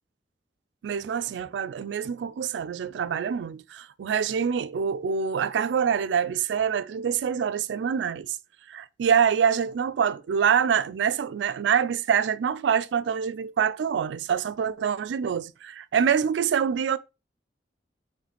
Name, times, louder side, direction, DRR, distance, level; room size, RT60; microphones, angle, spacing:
voice 1, 0.8-8.4 8.7-17.0, right 7 dB, 85° right, 0.3 m, -25 dB
5.7 x 3.1 x 2.9 m
head